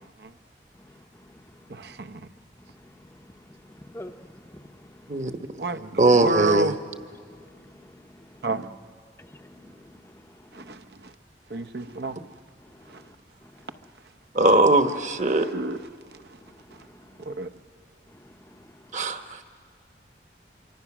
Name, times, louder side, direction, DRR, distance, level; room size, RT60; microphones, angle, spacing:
voice 1, 1.7-2.3 5.6-6.8 8.4-8.7 10.5-11.1 11.5-12.2 12.9-13.0 14.9-15.8 17.2-17.5, right 2 dB, 70° right, 8 dB, 0.8 m, -31 dB
voice 2, 3.9-4.3 5.0-5.1 7.4-8.5 9.4-9.7 10.1-10.2, left 1 dB, 15° left, 7 dB, 0.6 m, -45 dB
voice 3, 6.0-6.7 14.3-15.5 18.9-19.2, right 2 dB, 45° right, 7 dB, 1.1 m, -19 dB
25.5 x 24.0 x 6.1 m, 2.2 s
head